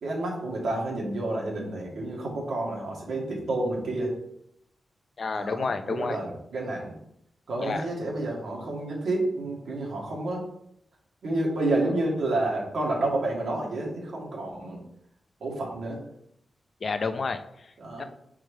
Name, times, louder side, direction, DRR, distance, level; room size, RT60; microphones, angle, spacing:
voice 1, 0.0-4.1 5.3-7.0 7.5-10.4 11.2-14.8 15.4-16.0 17.8-18.0, right 2 dB, 85° right, -2 dB, 1.9 m, -29 dB
voice 2, 5.2-6.2 7.6-7.9 16.8-17.7 18.0-18.1, left 4 dB, 50° left, 9 dB, 0.5 m, -30 dB
4.9 x 4.8 x 4.5 m, 0.75 s
wide cardioid pair, 115°, 0 cm